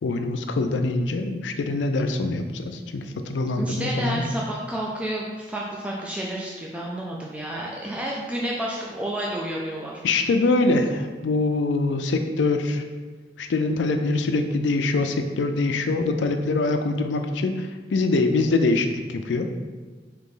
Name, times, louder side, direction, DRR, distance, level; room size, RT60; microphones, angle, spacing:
voice 1, 0.0-4.3 10.0-12.8 13.4-19.5, left 3 dB, 90° left, 6 dB, 0.4 m, -24 dB
voice 2, 3.6-10.0, right 1 dB, 5° right, -3 dB, 0.3 m, -30 dB
3.9 x 2.8 x 3.7 m, 1.5 s
head